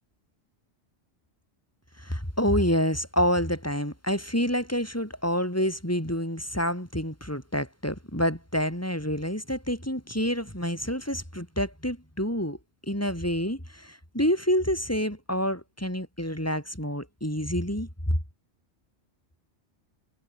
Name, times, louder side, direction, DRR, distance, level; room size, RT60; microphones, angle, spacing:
voice 1, 2.0-12.6 12.8-18.2, equal, 15° left, 7.3 m, -28 dB
omnidirectional pair, 1.1 m